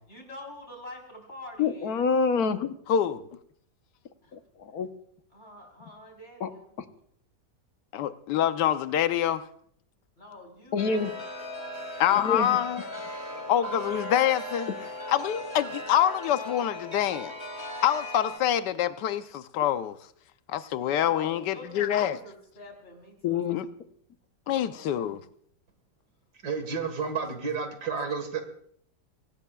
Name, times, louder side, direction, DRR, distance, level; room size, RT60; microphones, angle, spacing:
voice 1, 0.1-2.1 4.2-4.3 5.3-6.7 10.2-10.9 13.3-13.9 15.1-15.9 20.8-23.5 24.5-25.1 26.5-26.7, left 1 dB, 40° left, 4.3 m, -46 dB
voice 2, 1.6-2.7 4.3-4.9 6.4-6.5 10.7-11.1 12.1-12.5 23.2-23.6, left 5 dB, 65° left, 1.4 m, -27 dB
voice 3, 2.9-3.3 7.9-9.4 12.0-12.8 13.5-14.7 15.1-20.0 20.5-22.2 23.5-23.7 24.5-25.2, left 10 dB, 85° left, 1.4 m, -26 dB
Chime, 10.8-18.4, left 1 dB, 15° left, 2.4 m, -38 dB
voice 4, 26.4-28.4, right 5 dB, 70° right, 2.2 m, -31 dB
23.0 x 18.0 x 2.3 m
omnidirectional pair, 1.8 m